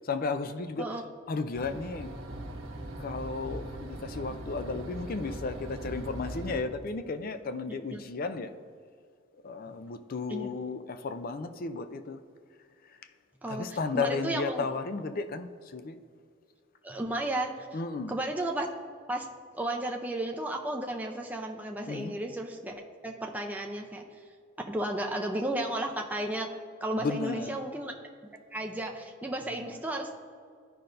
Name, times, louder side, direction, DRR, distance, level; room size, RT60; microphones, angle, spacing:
voice 1, 0.0-1.0 1.3-2.1 3.0-8.5 9.4-12.2 13.5-16.0 17.7-18.2 21.9-22.2 27.0-27.6 29.5-29.8, left 4 dB, 45° left, 0.4 m, -34 dB
sound 1, 1.5-6.6, right 1 dB, 75° right, 1.2 m, -40 dB
voice 2, 13.4-14.6 16.8-17.7 18.1-18.7 19.1-19.3 19.5-24.1 24.7-26.5 26.8-27.9 28.5-30.1, right 1 dB, 10° right, 0.5 m, -33 dB
13.5 x 5.5 x 2.6 m
head